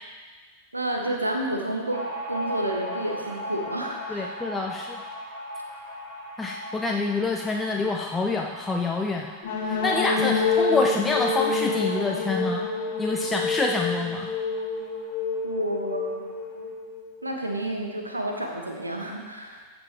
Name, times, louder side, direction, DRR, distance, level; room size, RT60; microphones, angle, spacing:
voice 1, 0.7-4.4 15.4-16.3 16.6-16.7 17.2-19.6, right 1 dB, 85° right, 2 dB, 1.3 m, -30 dB
sound 1, 1.9-15.0 15.3-15.4 15.7-16.5, left 1 dB, 45° right, 2.7 m, -39 dB
voice 2, 4.1-5.0 6.4-9.3 9.6-12.7 13.0-14.3, left 3 dB, 10° left, 1 dB, 0.6 m, -27 dB
sound 2, 9.4-17.1, left 4 dB, 55° left, 1.8 m, -27 dB
15.0 x 6.0 x 3.5 m, 1.4 s
figure-of-eight pair, 90°, 0 cm